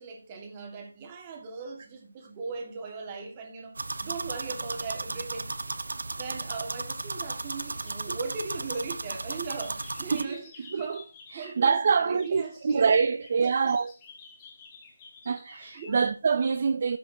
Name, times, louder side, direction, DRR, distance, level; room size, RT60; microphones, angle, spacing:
voice 1, 0.0-5.7 6.1-11.1 11.3-12.9 15.7-16.0, right 4 dB, 20° right, 1.8 m, -39 dB
sound 1, 3.7-10.2, right 3 dB, 75° right, 0.8 m, -35 dB
sound 2, 7.2-11.7 12.0-16.0, left 5 dB, 15° left, 1.3 m, -53 dB
voice 2, 11.3-13.9 15.3-17.0, right 5 dB, 35° right, 0.5 m, -25 dB
13.0 x 6.2 x 2.8 m
figure-of-eight pair, 170°, 0 cm